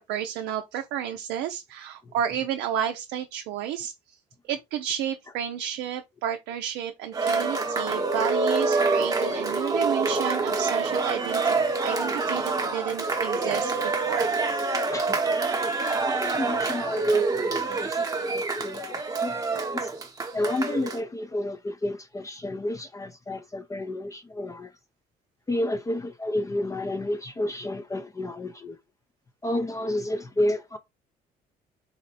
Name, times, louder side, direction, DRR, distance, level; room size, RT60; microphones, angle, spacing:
voice 1, 0.0-4.2 4.4-11.6 11.8-13.7 14.1-14.3, right 9 dB, 90° right, 0.5 m, -31 dB
Cheering, 7.1-21.0, right 3 dB, 20° right, 0.8 m, -26 dB
voice 2, 15.9-19.9 20.3-24.7 25.5-28.8 29.4-30.8, left 1 dB, 20° left, 0.4 m, -31 dB
4.2 x 2.1 x 3.8 m
cardioid pair, 95°, 17 cm